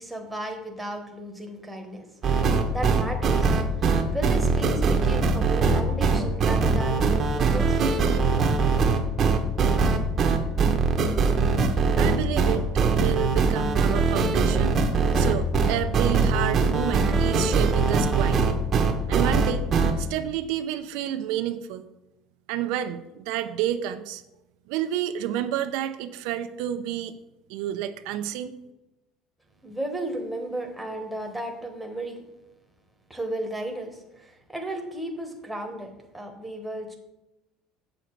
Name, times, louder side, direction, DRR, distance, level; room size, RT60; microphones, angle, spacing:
voice 1, 0.0-7.8 29.6-32.3 33.1-37.0, right 1 dB, ahead, 2 dB, 1.0 m, -34 dB
sound 1, 2.2-19.9, right 4 dB, 30° right, 0.8 m, -22 dB
voice 2, 12.0-12.7 12.9-14.7 15.1-18.6 19.1-19.6 20.0-21.8 22.5-24.2 24.7-27.1 27.5-28.5, right 11 dB, 75° right, 9 dB, 0.5 m, -30 dB
7.7 x 6.5 x 4.5 m, 0.94 s
cardioid pair, 165°, 0 cm